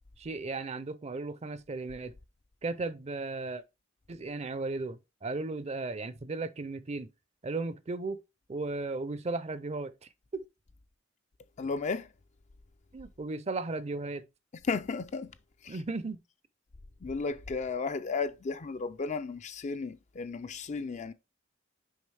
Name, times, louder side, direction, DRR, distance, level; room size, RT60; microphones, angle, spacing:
voice 1, 0.2-2.1 2.6-3.6 4.1-7.1 7.4-8.2 8.5-9.9 10.3-10.4 12.9-14.2 15.7-16.2, right 3 dB, 30° right, 0.5 m, -35 dB
voice 2, 11.6-12.1 14.7-15.3 15.6-15.8 17.0-21.1, left 4 dB, 35° left, 0.4 m, -34 dB
6.4 x 4.9 x 3.3 m
head